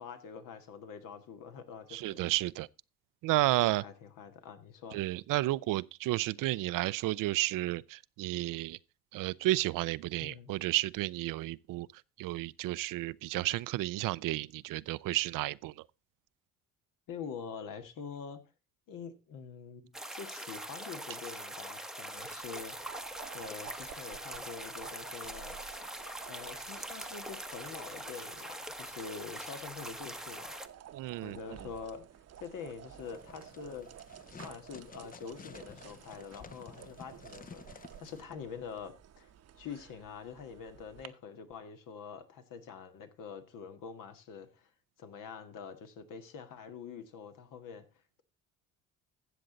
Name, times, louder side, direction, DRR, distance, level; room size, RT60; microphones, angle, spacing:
voice 1, 0.0-2.3 3.4-5.0 10.2-10.5 17.1-18.4 18.9-22.8 23.3-25.6 26.3-30.5 31.2-32.0 32.4-33.9 34.3-39.3 39.5-44.7 45.0-47.8, left 6 dB, 70° left, 1.9 m, -45 dB
voice 2, 1.9-2.7 3.2-3.8 4.9-8.8 9.1-11.9 12.2-15.7 30.9-31.4, right 17 dB, 70° right, 0.5 m, -32 dB
sound 1, 19.9-30.7, right 1 dB, ahead, 0.8 m, -43 dB
sound 2, 22.2-41.1, right 10 dB, 50° right, 0.9 m, -53 dB
sound 3, 33.0-38.2, left 5 dB, 25° left, 0.7 m, -52 dB
13.0 x 7.8 x 3.9 m
cardioid pair, 100°, 34 cm